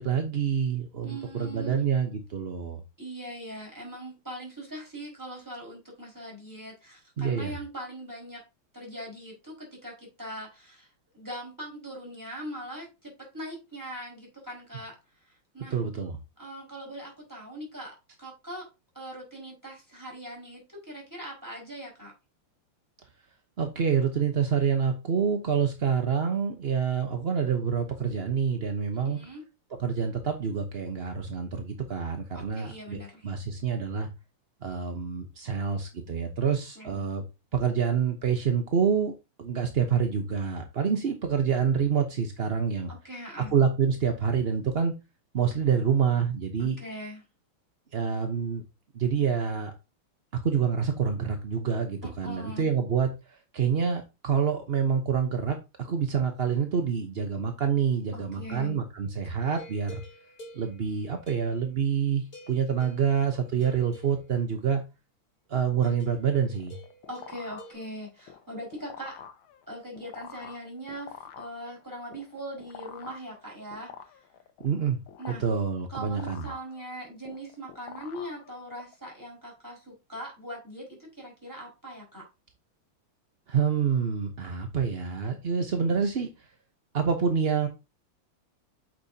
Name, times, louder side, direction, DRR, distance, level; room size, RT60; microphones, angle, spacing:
voice 1, 0.0-2.8 7.2-7.5 15.7-16.2 23.6-29.2 29.8-34.1 34.6-37.2 37.5-39.1 39.4-42.9 43.5-44.9 45.3-46.8 47.9-48.6 48.9-49.7 50.3-60.0 60.5-64.8 65.5-66.8 74.6-75.0 75.4-76.4 83.5-86.3 86.9-87.7, right 7 dB, 50° right, 5 dB, 0.7 m, -27 dB
voice 2, 1.0-1.9 3.0-8.4 8.7-10.9 11.1-15.0 15.2-15.8 16.4-18.7 18.9-22.1 29.0-29.4 32.3-33.3 36.7-37.2 42.9-43.6 46.6-47.2 52.0-52.7 58.1-58.8 67.1-69.2 69.7-74.2 75.2-75.4 75.9-82.2, right 1 dB, 10° right, -2 dB, 4.8 m, -41 dB
sound 1, 59.6-62.0 62.3-64.6 65.8-67.7, right 1 dB, 25° left, 3.3 m, -50 dB
sound 2, 66.5-78.9, left 8 dB, 70° left, 1.7 m, -47 dB
8.7 x 6.5 x 2.7 m, 0.25 s
omnidirectional pair, 2.4 m